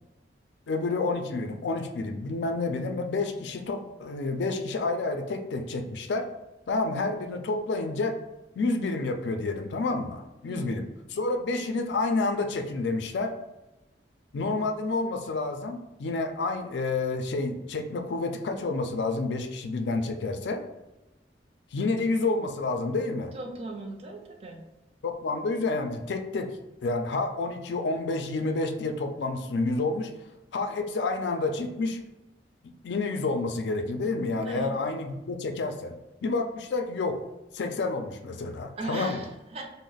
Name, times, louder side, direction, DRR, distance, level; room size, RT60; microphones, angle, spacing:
voice 1, 0.7-6.3 6.7-8.2 8.6-13.3 14.3-20.6 21.7-23.3 25.0-30.1 30.5-32.0 32.6-36.0 36.2-37.2 37.5-39.2, left 3 dB, 80° left, 6 dB, 0.4 m, -29 dB
voice 2, 23.3-24.6 34.4-34.8 38.8-39.7, right 3 dB, 35° right, 2 dB, 0.4 m, -37 dB
3.1 x 2.0 x 3.8 m, 1.0 s
head